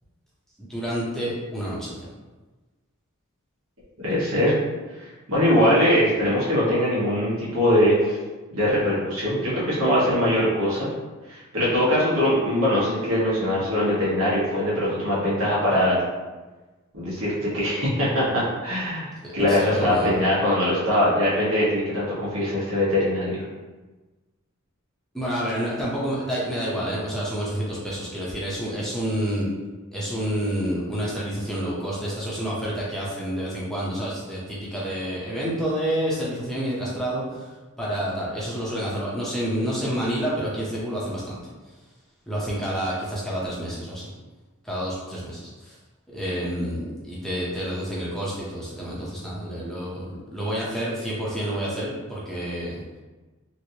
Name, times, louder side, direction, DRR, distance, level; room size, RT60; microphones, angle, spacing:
voice 1, 0.6-1.9 19.5-20.2 25.1-29.5 29.9-37.5 37.8-41.4 42.3-44.1 44.6-45.8 46.1-52.8, equal, ahead, -7 dB, 0.6 m, -29 dB
voice 2, 4.0-4.5 5.3-8.2 8.5-10.9 11.3-16.0 16.9-23.4, left 1 dB, 75° right, -8 dB, 1.3 m, -22 dB
3.1 x 2.5 x 2.7 m, 1.2 s
head